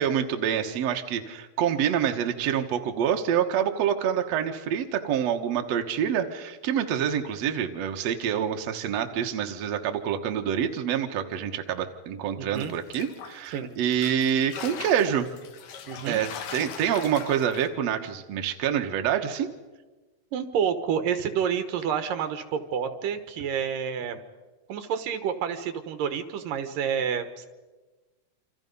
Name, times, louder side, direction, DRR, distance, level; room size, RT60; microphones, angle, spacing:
voice 1, 0.0-15.3 16.1-19.5, right 9 dB, 60° right, 4 dB, 2.2 m, -27 dB
voice 2, 12.4-12.7 13.5-13.7 15.9-16.2 20.3-24.2 24.7-27.5, right 7 dB, 80° right, 9 dB, 3.0 m, -29 dB
sound 1, 12.5-13.6 13.9-17.7, left 8 dB, 75° left, 2.9 m, -40 dB
27.5 x 26.5 x 5.5 m, 1.2 s
omnidirectional pair, 3.9 m